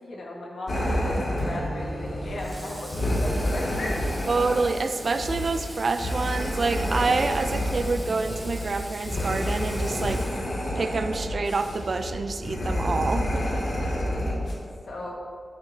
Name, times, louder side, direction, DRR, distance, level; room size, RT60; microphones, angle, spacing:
voice 1, 0.0-3.9 13.6-14.3 14.9-15.1, left 1 dB, 80° left, -2 dB, 1.9 m, -36 dB
sound 1, 0.7-14.5, left 1 dB, 65° left, 2.4 m, -29 dB
Acoustic guitar / Strum, 1.4-5.3, right 2 dB, 80° right, 1.2 m, -41 dB
Water / Water tap faucet, 2.4-10.9, equal, ahead, 1.8 m, -43 dB
voice 2, 4.3-10.2 10.8-13.4, right 3 dB, 55° right, 9 dB, 0.5 m, -27 dB
11.0 x 9.0 x 2.9 m, 2.3 s
wide cardioid pair, 85°, 0 cm